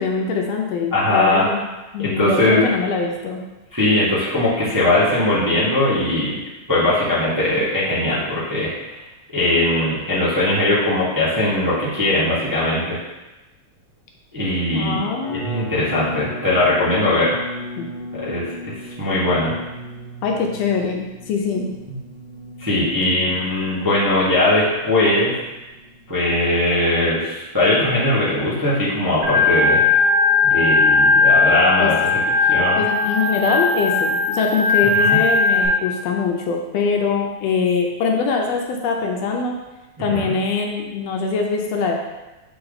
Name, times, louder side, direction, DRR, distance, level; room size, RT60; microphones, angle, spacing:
voice 1, 0.0-1.6 1.9-3.4 14.7-15.4 17.8-17.9 20.2-21.8 31.8-31.9 32.8-39.6 40.0-41.9, left 5 dB, 75° left, 1 dB, 1.6 m, -23 dB
voice 2, 0.9-1.5 2.0-2.7 3.7-6.3 6.7-8.7 8.9-9.0 9.3-13.0 14.3-15.0 15.4-17.4 18.1-19.6 21.9-22.0 22.6-25.3 26.1-29.8 30.5-32.1 32.5-32.8 34.9-35.2 40.1-40.3, left 1 dB, 20° right, -10 dB, 0.4 m, -20 dB
sound 1, 15.2-26.2, left 1 dB, 55° left, 1.3 m, -36 dB
Organ, 29.2-35.7, left 3 dB, 80° right, 3.1 m, -17 dB
6.8 x 3.5 x 4.0 m, 1.1 s
omnidirectional pair, 3.4 m